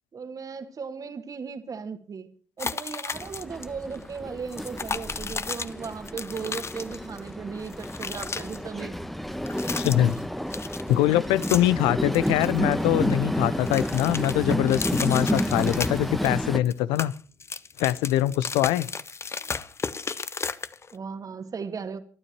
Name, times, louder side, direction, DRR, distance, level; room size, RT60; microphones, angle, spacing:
voice 1, 0.1-2.3 2.6-9.0 20.9-22.0, right 5 dB, 40° right, 9 dB, 2.2 m, -36 dB
sound 1, 2.6-3.7 3.9-4.1 4.5-7.3 7.5-8.6 9.3-10.2 10.5-11.8 12.1-13.2 13.5-16.4 16.7-21.0, left 5 dB, 30° left, 0.8 m, -34 dB
Train, 3.1-16.6, equal, ahead, 1.3 m, -30 dB
voice 2, 9.8-10.2 10.9-17.1 17.8-18.9, left 14 dB, 70° left, 19 dB, 0.7 m, -23 dB
26.5 x 12.5 x 3.0 m, 0.41 s
figure-of-eight pair, 45°, 9 cm